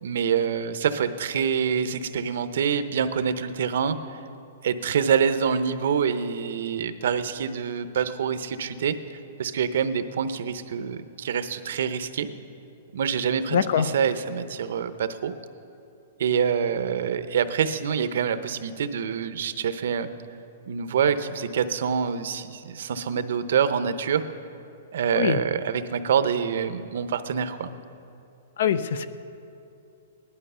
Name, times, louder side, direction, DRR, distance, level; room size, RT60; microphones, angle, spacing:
voice 1, 0.0-4.0 4.6-9.0 9.4-12.3 12.9-15.3 16.2-20.1 20.7-24.2 24.9-27.7, right 7 dB, 60° right, 11 dB, 0.8 m, -26 dB
voice 2, 13.5-13.9 25.1-25.4 28.6-29.1, left 8 dB, 60° left, 13 dB, 0.7 m, -23 dB
18.5 x 11.5 x 5.6 m, 2.7 s
hypercardioid pair, 175°, 0 cm